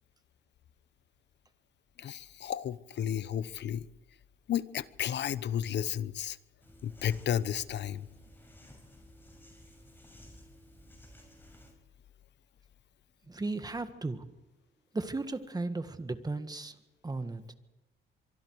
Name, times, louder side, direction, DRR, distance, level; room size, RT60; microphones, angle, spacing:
voice 1, 2.0-3.8 4.5-6.4 6.8-8.0, left 10 dB, 60° left, 17 dB, 0.9 m, -33 dB
sound 1, 6.6-11.7, equal, 10° left, 6.4 m, -54 dB
voice 2, 13.3-14.2 14.9-16.7 17.0-17.5, right 3 dB, 20° right, 10 dB, 1.7 m, -35 dB
25.0 x 23.5 x 4.8 m, 0.99 s
cardioid pair, 90°, 20 cm